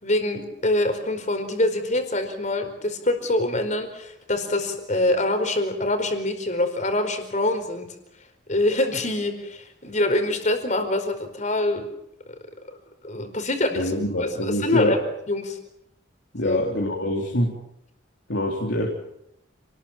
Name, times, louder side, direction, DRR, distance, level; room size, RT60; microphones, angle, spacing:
voice 1, 0.0-7.9 8.5-11.9 12.7-12.8 13.0-13.9 14.2-15.0 15.3-15.6 16.4-16.6, left 1 dB, 40° left, 7 dB, 4.7 m, -25 dB
voice 2, 13.8-15.0 16.3-17.6 18.3-18.9, left 1 dB, 65° left, -1 dB, 3.8 m, -24 dB
29.5 x 20.0 x 7.4 m, 0.79 s
head